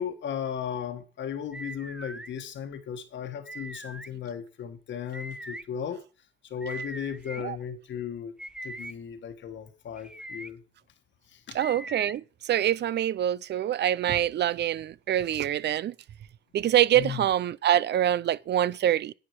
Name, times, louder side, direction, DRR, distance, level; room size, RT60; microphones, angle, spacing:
voice 1, 0.0-6.0 6.5-8.3 8.6-10.6 11.3-11.6 16.9-17.2, left 8 dB, 65° left, 1.7 m, -36 dB
sound 1, 1.5-2.3 3.5-4.1 5.1-5.6 6.6-7.4 8.4-8.9 10.0-10.5 11.6-12.2, right 1 dB, 5° right, 0.6 m, -40 dB
voice 2, 11.5-15.9 16.5-19.1, right 11 dB, 60° right, 0.5 m, -25 dB
10.0 x 8.7 x 4.8 m
cardioid pair, 90°, 20 cm